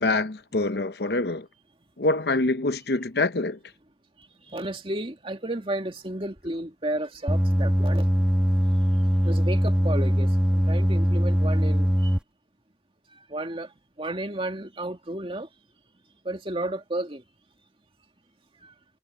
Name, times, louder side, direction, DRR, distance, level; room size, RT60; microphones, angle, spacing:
voice 1, 0.0-1.5 2.0-3.6, left 2 dB, 60° left, 0.8 m, -25 dB
voice 2, 4.4-8.1 9.2-12.2 13.1-15.5 16.2-17.2 18.6-18.7, right 1 dB, 30° right, 2.1 m, -33 dB
sound 1, 7.3-12.2, equal, 5° right, 1.6 m, -22 dB
head